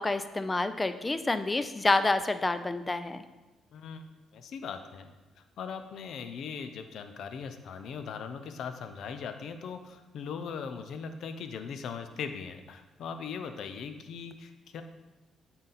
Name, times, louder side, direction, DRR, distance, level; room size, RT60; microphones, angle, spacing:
voice 1, 0.0-3.2, left 2 dB, 20° left, 11 dB, 0.4 m, -28 dB
voice 2, 3.7-4.0 4.3-14.8, left 6 dB, 70° left, 8 dB, 0.6 m, -40 dB
8.8 x 4.0 x 4.2 m, 1.1 s
cardioid pair, 90°, 0 cm